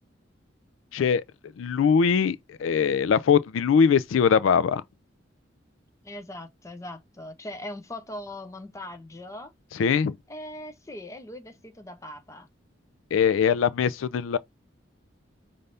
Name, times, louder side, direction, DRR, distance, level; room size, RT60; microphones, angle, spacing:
voice 1, 0.9-1.2 1.6-4.8 9.7-10.2 13.1-14.4, left 6 dB, 90° left, 0.4 m, -22 dB
voice 2, 6.0-9.5 10.3-12.5, left 1 dB, 15° left, 0.7 m, -40 dB
5.4 x 2.6 x 3.3 m
head